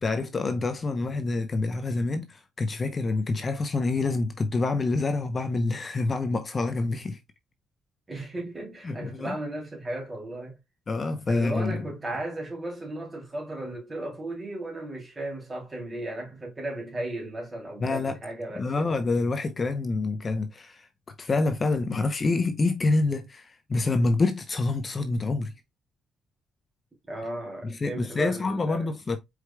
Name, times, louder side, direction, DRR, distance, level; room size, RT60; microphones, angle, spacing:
voice 1, 0.0-7.2 8.8-9.4 10.9-11.8 17.8-18.2 18.5-20.9 21.2-25.5 27.6-29.2, left 3 dB, 35° left, 0.7 m, -27 dB
voice 2, 8.1-10.6 11.3-18.9 27.1-28.9, right 1 dB, 20° right, 3.0 m, -35 dB
4.8 x 4.6 x 2.2 m
cardioid pair, 90°, 0 cm